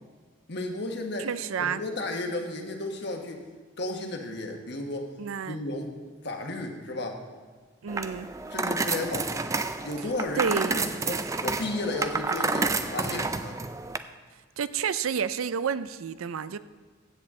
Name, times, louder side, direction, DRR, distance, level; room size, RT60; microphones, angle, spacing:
voice 1, 0.5-1.3 1.6-3.4 3.8-5.1 5.5-6.0 6.2-7.2 8.5-9.3 9.8-13.6, left 2 dB, 55° left, 3 dB, 1.3 m, -33 dB
voice 2, 1.2-1.8 5.2-5.6 7.8-8.3 10.3-10.9 14.6-16.6, right 7 dB, 90° right, 14 dB, 0.5 m, -30 dB
sound 1, 7.9-14.0, right 3 dB, 15° right, 0.3 m, -30 dB
15.0 x 8.2 x 3.7 m, 1.5 s
head